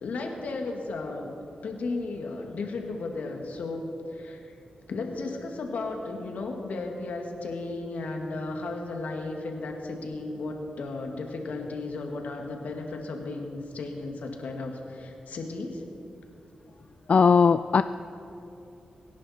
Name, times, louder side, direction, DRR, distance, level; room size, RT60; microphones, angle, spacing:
voice 1, 0.0-1.3 1.6-4.5 4.9-15.8, left 3 dB, 80° left, 2 dB, 1.9 m, -34 dB
voice 2, 17.1-17.8, left 5 dB, 55° left, 12 dB, 0.3 m, -18 dB
23.5 x 10.5 x 4.3 m, 2.8 s
cardioid pair, 75°, 3 cm